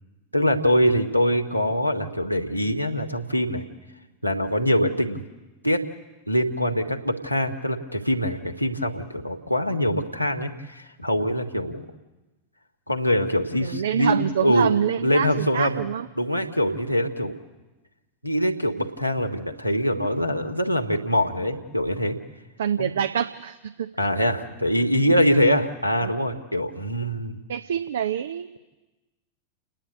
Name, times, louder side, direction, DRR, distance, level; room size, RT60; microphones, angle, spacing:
voice 1, 0.3-3.6 4.2-5.2 5.6-5.8 6.3-11.8 12.9-15.8 16.2-17.3 18.2-22.2 22.8-22.9 24.0-27.4, equal, 90° left, 4 dB, 1.6 m, -23 dB
voice 2, 13.6-16.1 22.6-23.9 26.0-26.1 27.5-28.6, right 8 dB, 65° right, 11 dB, 0.6 m, -26 dB
30.0 x 10.0 x 9.5 m, 1.1 s
figure-of-eight pair, 90°, 0 cm